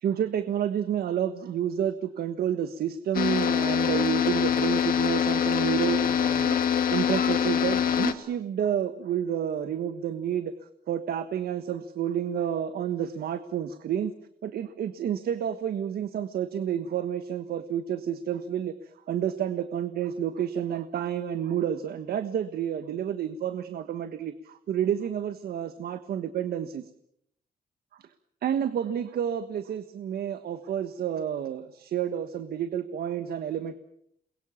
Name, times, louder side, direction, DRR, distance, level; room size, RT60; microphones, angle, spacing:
voice 1, 0.0-6.6 6.9-10.5 10.9-14.1 14.4-26.9 28.0-28.1 28.4-33.8, right 9 dB, 75° right, 11 dB, 1.4 m, -30 dB
sound 1, 3.1-8.1, left 8 dB, 65° left, 2.2 m, -24 dB
29.0 x 22.5 x 7.2 m, 0.74 s
wide cardioid pair, 165°, 16 cm